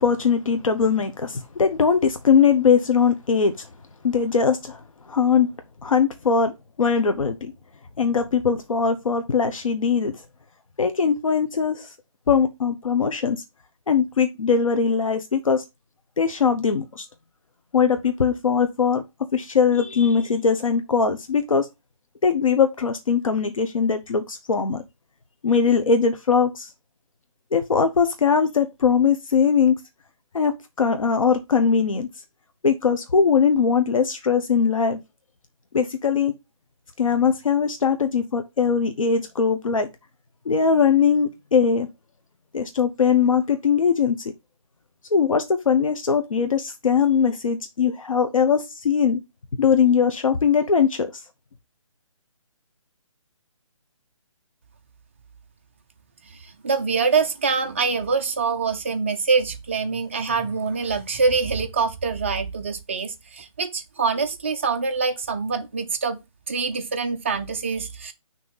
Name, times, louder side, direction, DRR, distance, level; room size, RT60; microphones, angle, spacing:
voice 1, 0.0-3.7 4.0-4.8 5.1-5.5 5.8-6.5 6.8-7.5 8.0-10.2 10.8-11.9 12.3-13.4 13.9-15.6 16.2-17.1 17.7-19.0 19.3-21.7 22.2-24.8 25.4-26.7 27.5-29.7 30.3-32.1 32.6-35.0 35.7-36.3 37.0-39.9 40.4-41.9 42.5-44.2 45.1-49.2 49.6-51.1, left 6 dB, 70° left, 1.0 m, -20 dB
voice 2, 56.3-66.2 66.5-68.1, right 5 dB, 20° right, 0.5 m, -25 dB
6.2 x 3.0 x 5.4 m
hypercardioid pair, 170°, 18 cm